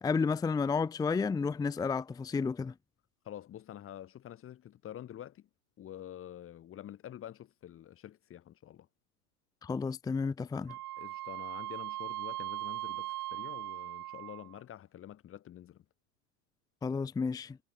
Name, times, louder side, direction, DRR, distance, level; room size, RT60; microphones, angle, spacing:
voice 1, 0.0-2.7 9.6-10.8 16.8-17.6, left 5 dB, 10° left, 0.8 m, -31 dB
voice 2, 3.2-5.5 5.8-8.9 11.0-15.8, left 11 dB, 25° left, 4.0 m, -47 dB
Wind instrument woodwind instrument, 10.7-14.6, right 16 dB, 70° right, 1.1 m, -39 dB
hypercardioid pair, 125°, 48 cm